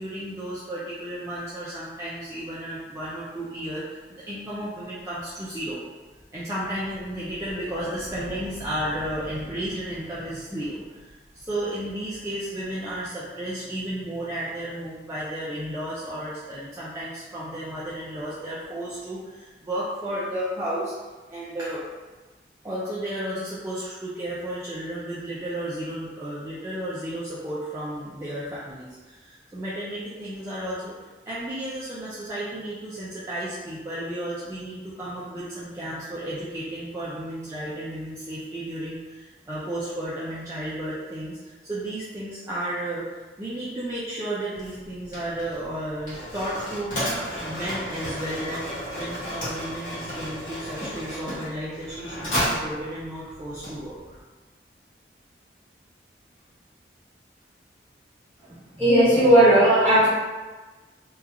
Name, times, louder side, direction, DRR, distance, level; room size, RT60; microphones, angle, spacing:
voice 1, 0.0-5.8 6.3-20.9 21.3-21.8 22.6-30.9 31.3-46.9 47.4-48.6 48.9-54.2, right 1 dB, 15° right, -9 dB, 0.3 m, -33 dB
Mechanisms, 44.5-54.2, equal, 50° left, 1.0 m, -33 dB
voice 2, 58.8-60.1, right 1 dB, 10° left, -12 dB, 1.1 m, -16 dB
2.8 x 2.3 x 2.4 m, 1.2 s
head